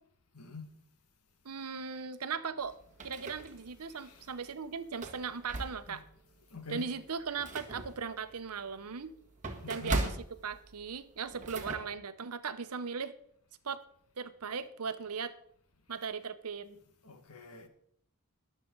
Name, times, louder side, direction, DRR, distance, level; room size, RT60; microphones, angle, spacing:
voice 1, 0.3-0.7 3.9-4.2 5.9-6.0 6.5-6.8 9.6-10.0 16.6-16.7 17.0-17.7, left 4 dB, 90° left, 1.8 m, -46 dB
voice 2, 1.4-2.7 3.0-6.0 6.7-9.1 9.7-13.1 13.6-13.8 14.2-15.3 15.9-16.7, right 5 dB, 85° right, 0.9 m, -38 dB
sound 1, 2.6-3.9 4.3-4.4 4.9-6.1 6.6-6.7 7.1-11.8, right 2 dB, 35° right, 1.6 m, -39 dB
21.0 x 7.5 x 3.9 m
head